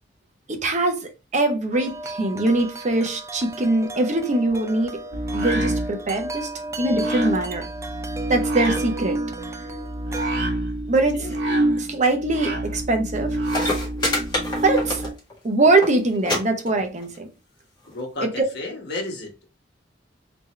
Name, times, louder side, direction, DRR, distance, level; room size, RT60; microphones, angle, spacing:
voice 1, 0.5-5.0 5.3-6.5 6.8-7.7 8.3-9.2 10.9-11.3 11.8-13.4 14.6-15.1 15.4-17.3 18.2-18.3, right 2 dB, 40° right, 0.7 m, -22 dB
Wind chime, 1.7-10.4, right 2 dB, 15° right, 0.4 m, -35 dB
sound 1, 5.1-15.1, right 1 dB, 80° right, 1.4 m, -27 dB
voice 2, 10.9-11.3 11.6-11.8 17.8-19.5, left 2 dB, 65° left, 1.4 m, -34 dB
sound 2, 13.2-13.3 13.4-15.4 15.6-15.9 16.2-16.4 16.7-17.2 18.0-18.1, left 1 dB, 25° left, 1.5 m, -26 dB
3.8 x 2.9 x 3.0 m
head